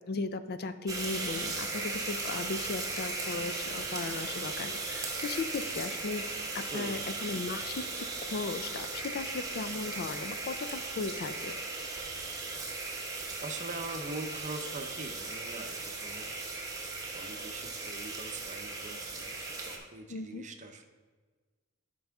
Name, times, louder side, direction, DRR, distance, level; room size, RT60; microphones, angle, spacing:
voice 1, 0.1-6.2 6.5-11.5 20.1-20.4, left 4 dB, 45° left, 11 dB, 0.4 m, -37 dB
sound 1, 0.9-19.8, right 3 dB, 15° right, 1.1 m, -37 dB
voice 2, 6.7-7.0 13.4-16.4 17.1-20.8, right 2 dB, 35° right, 6 dB, 0.7 m, -42 dB
11.0 x 5.4 x 3.5 m, 1.4 s
head